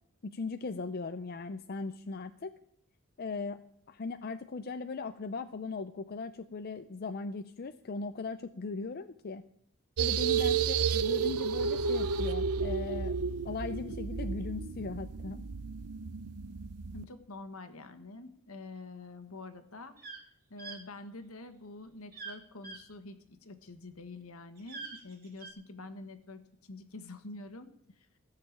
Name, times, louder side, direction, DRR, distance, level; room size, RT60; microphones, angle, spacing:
voice 1, 0.2-2.5 3.2-3.6 3.9-9.4 10.0-13.2 13.4-15.4, left 4 dB, 45° left, 10 dB, 0.5 m, -38 dB
sound 1, 10.0-17.0, right 6 dB, 90° right, 0.6 m, -32 dB
voice 2, 16.9-20.0 20.5-27.7 28.0-28.1, left 2 dB, 70° left, 9 dB, 1.4 m, -47 dB
sound 2, 20.0-20.2 20.6-20.8 22.1-22.4 22.6-22.8 24.6-25.5, right 4 dB, 45° right, 2.7 m, -44 dB
16.0 x 6.7 x 8.6 m, 0.71 s
head